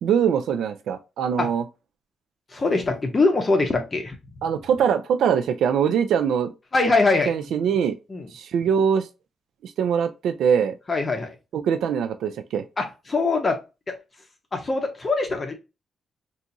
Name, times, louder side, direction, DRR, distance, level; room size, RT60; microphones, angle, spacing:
voice 1, 0.0-1.6 4.4-6.5 7.3-7.9 8.3-9.1 9.6-10.8 11.5-12.6, right 7 dB, 85° right, 0.4 m, -22 dB
voice 2, 2.5-4.2 6.7-7.3 8.1-8.3 10.9-11.3 12.8-13.6 13.9-14.0 14.5-15.5, left 3 dB, 25° left, 0.6 m, -22 dB
3.8 x 2.4 x 2.7 m
cardioid pair, 145°, 0 cm